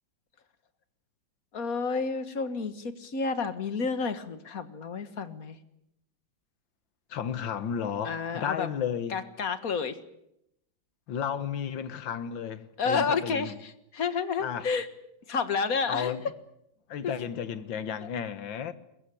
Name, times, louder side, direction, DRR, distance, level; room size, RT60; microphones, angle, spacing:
voice 1, 1.5-5.6 8.0-8.7 9.1-10.0 12.8-14.9 15.3-16.1 17.0-17.1, left 5 dB, 50° left, 1.9 m, -30 dB
voice 2, 7.1-9.2 11.1-13.6 14.4-14.7 15.9-16.2 16.9-18.7, left 8 dB, 75° left, 2.0 m, -33 dB
22.0 x 22.0 x 8.5 m
omnidirectional pair, 2.1 m